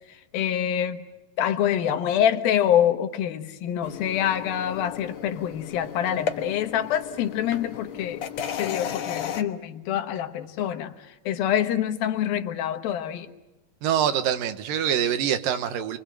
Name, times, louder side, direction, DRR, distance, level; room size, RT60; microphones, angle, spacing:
voice 1, 0.3-1.0 1.4-8.2 8.6-10.9 11.3-13.3, left 10 dB, 90° left, 3.1 m, -25 dB
sound 1, 3.8-9.4, left 8 dB, 60° left, 2.1 m, -34 dB
voice 2, 13.8-16.0, right 9 dB, 75° right, 2.9 m, -25 dB
28.5 x 24.0 x 7.7 m
omnidirectional pair, 4.1 m